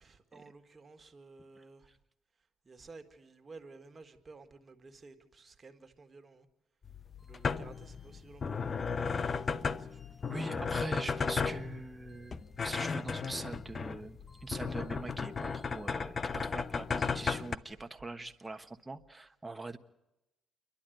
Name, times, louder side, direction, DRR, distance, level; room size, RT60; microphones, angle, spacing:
voice 1, 0.0-1.9 2.6-6.5 7.2-10.3, right 3 dB, 30° right, 1.9 m, -54 dB
sound 1, 6.9-17.6, left 5 dB, 40° left, 0.7 m, -35 dB
sound 2, 7.2-15.9, left 1 dB, 25° left, 7.9 m, -69 dB
voice 2, 10.3-19.8, right 2 dB, 15° right, 1.3 m, -43 dB
29.0 x 11.5 x 9.3 m
cardioid pair, 90°, 0 cm